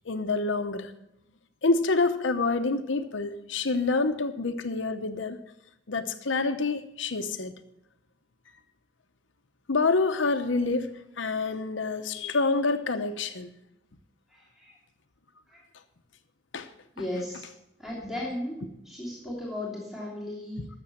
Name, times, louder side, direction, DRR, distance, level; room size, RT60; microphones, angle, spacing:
voice 1, 0.1-0.9 1.6-5.4 5.9-7.5 9.7-10.9 11.2-13.5 16.5-16.7 20.6-20.7, left 3 dB, 85° left, 8 dB, 0.9 m, -27 dB
voice 2, 14.3-14.8 15.5-15.6 16.9-17.5 17.8-20.6, left 1 dB, ahead, -5 dB, 3.0 m, -36 dB
13.0 x 7.0 x 7.6 m, 0.86 s
head